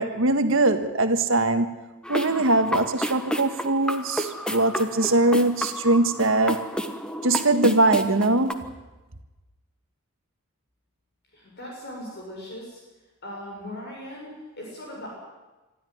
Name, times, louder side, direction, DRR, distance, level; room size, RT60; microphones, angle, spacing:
voice 1, 0.0-1.7 2.1-6.6 7.2-8.7, right 2 dB, 60° right, 8 dB, 1.7 m, -21 dB
sound 1, 2.0-8.5, equal, 5° left, 1.2 m, -31 dB
voice 2, 11.3-12.8 13.2-15.1, left 1 dB, 50° left, -2 dB, 6.7 m, -39 dB
24.0 x 13.5 x 9.5 m, 1.1 s
head